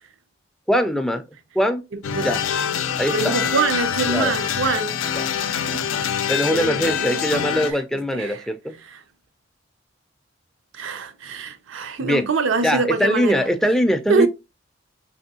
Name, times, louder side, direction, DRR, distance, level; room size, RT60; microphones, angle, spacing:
voice 1, 0.7-1.2 1.6-1.8 2.2-2.4 3.0-3.3 4.1-4.3 5.2-5.3 6.3-8.7 12.0-12.3 12.6-14.3, equal, ahead, 0.3 m, -22 dB
sound 1, 2.0-7.7, left 8 dB, 90° left, 0.4 m, -25 dB
voice 2, 3.1-7.8 8.1-8.5 8.8-9.0 10.7-13.5 14.1-14.3, right 4 dB, 80° right, 0.5 m, -25 dB
3.4 x 3.0 x 2.7 m
head